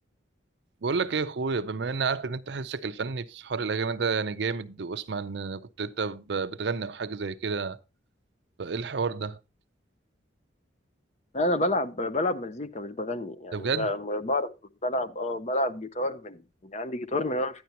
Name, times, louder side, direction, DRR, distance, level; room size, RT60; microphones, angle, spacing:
voice 1, 0.8-7.8 8.6-9.4 13.5-13.9, right 5 dB, 65° right, 0.5 m, -30 dB
voice 2, 11.3-14.5 14.8-17.6, left 1 dB, 35° left, 0.6 m, -29 dB
10.5 x 9.3 x 2.8 m
head